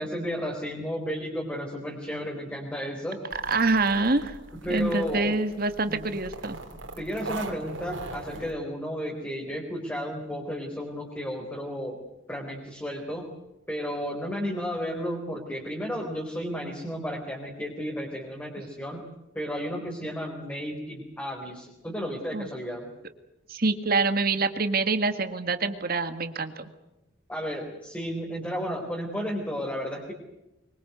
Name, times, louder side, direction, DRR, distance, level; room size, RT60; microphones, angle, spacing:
voice 1, 0.0-3.3 4.6-5.4 5.9-6.0 7.0-12.0 12.3-13.3 13.7-19.0 19.3-22.9 27.3-30.1, equal, 10° left, -1 dB, 4.0 m, -33 dB
sound 1, 3.3-8.5, right 2 dB, 90° right, 3.4 m, -41 dB
voice 2, 3.5-4.4 4.7-6.6 22.3-22.5 23.5-26.7, right 3 dB, 50° right, 9 dB, 1.8 m, -26 dB
24.5 x 23.5 x 8.0 m, 0.93 s
head